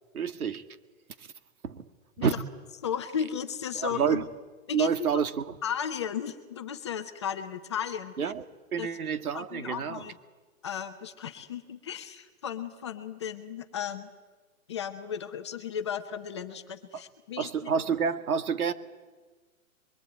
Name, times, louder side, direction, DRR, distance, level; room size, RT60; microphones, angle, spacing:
voice 1, 0.1-0.7 1.2-1.3 1.6-1.9 2.2-2.3 3.7-4.3 4.7-5.6 8.2-8.5 8.7-10.0 16.9-17.0 17.4-18.7, right 7 dB, 80° right, 9 dB, 2.2 m, -28 dB
voice 2, 2.8-4.2 4.7-4.9 5.6-8.1 8.8-8.9 9.3-10.1 10.6-14.1 14.7-17.5, left 8 dB, 20° left, 7 dB, 0.8 m, -35 dB
25.5 x 23.0 x 9.0 m, 1.3 s
hypercardioid pair, 175°, 43 cm